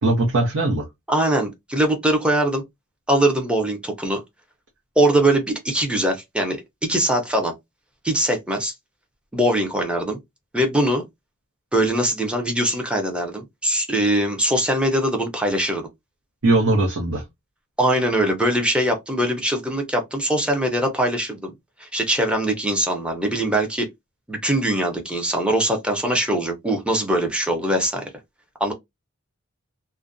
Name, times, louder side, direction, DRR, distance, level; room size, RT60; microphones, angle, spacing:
voice 1, 0.0-0.9 16.4-17.2, right 2 dB, 80° right, 0.7 m, -20 dB
voice 2, 1.1-2.6 3.1-4.2 5.0-7.5 8.0-8.7 9.3-10.2 10.5-11.0 11.7-15.9 17.8-21.5 21.8-23.9 24.3-28.1 28.6-28.7, right 1 dB, 5° right, 0.5 m, -22 dB
2.4 x 2.1 x 2.4 m
head